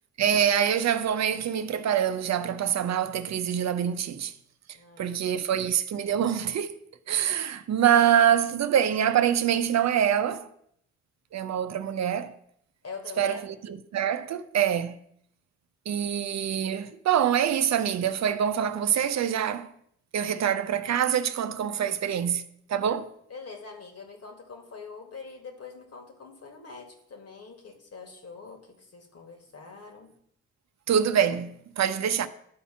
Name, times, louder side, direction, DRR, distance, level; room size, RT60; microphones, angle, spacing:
voice 1, 0.2-4.3 5.0-6.8 7.1-10.5 11.3-12.3 13.2-15.0 15.9-19.7 20.1-22.4 22.7-23.1 30.9-32.3, right 9 dB, 55° right, 0.7 m, -25 dB
voice 2, 4.7-5.4 12.8-13.5 23.3-30.1, left 5 dB, 45° left, 2.0 m, -44 dB
10.5 x 4.2 x 5.8 m
hypercardioid pair, 45°, 33 cm